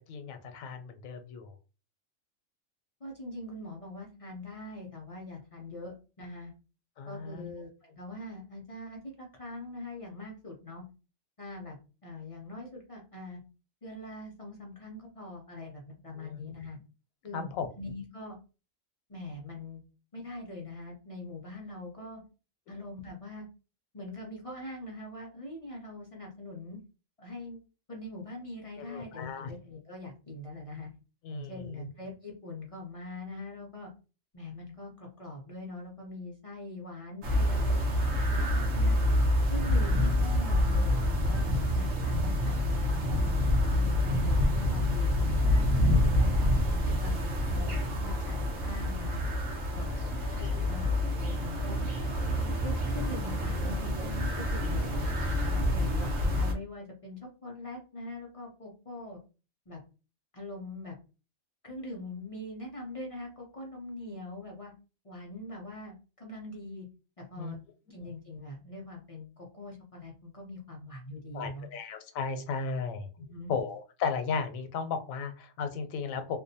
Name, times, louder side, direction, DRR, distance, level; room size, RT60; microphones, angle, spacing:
voice 1, 0.1-1.5 7.0-7.5 16.2-16.4 17.3-17.7 28.9-29.5 31.2-31.9 46.4-46.5 46.9-47.0 49.9-50.8 67.4-67.5 71.3-73.1 73.5-76.4, left 5 dB, 85° left, 7 dB, 1.0 m, -35 dB
voice 2, 3.0-6.5 7.1-10.8 11.4-11.8 12.0-13.4 13.8-16.8 17.2-18.4 19.1-19.8 20.1-22.2 22.7-23.5 23.9-26.8 27.2-27.6 27.9-30.9 31.3-33.9 34.3-37.9 38.3-39.0 39.5-46.4 46.8-49.2 49.7-49.9 50.4-50.9 51.2-51.8 52.6-59.2 59.7-59.8 60.3-60.9 61.6-64.7 65.0-66.9 67.2-67.6 67.9-71.7 73.2-73.5, left 2 dB, 55° left, -2 dB, 0.3 m, -42 dB
sound 1, 37.2-56.5, left 1 dB, 75° right, 1.0 m, -27 dB
2.6 x 2.1 x 2.6 m, 0.33 s
omnidirectional pair, 1.4 m